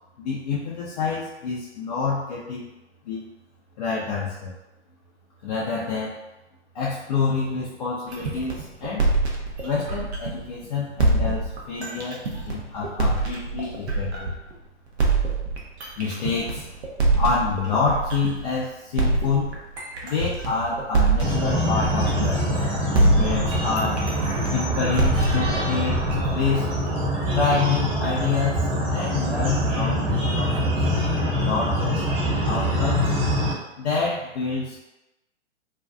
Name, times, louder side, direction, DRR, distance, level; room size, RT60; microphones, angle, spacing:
voice 1, 0.2-2.7 3.1-3.2 3.8-4.5 5.4-6.1 6.7-9.1 9.6-12.2 12.4-14.3 16.0-16.6 17.2-19.5 20.0-22.6 22.9-24.0 24.5-26.0 26.3-26.7 27.3-31.0 31.4-33.1 33.8-34.8, left 4 dB, 40° left, -7 dB, 0.4 m, -27 dB
sound 1, 8.1-10.5 11.0-14.5 15.0-18.5 19.0-22.6 22.9-27.0, right 3 dB, 65° right, 0.7 m, -25 dB
sound 2, 21.2-33.5, equal, 30° right, 0.7 m, -24 dB
2.5 x 2.1 x 2.4 m, 0.97 s
figure-of-eight pair, 115°, 35 cm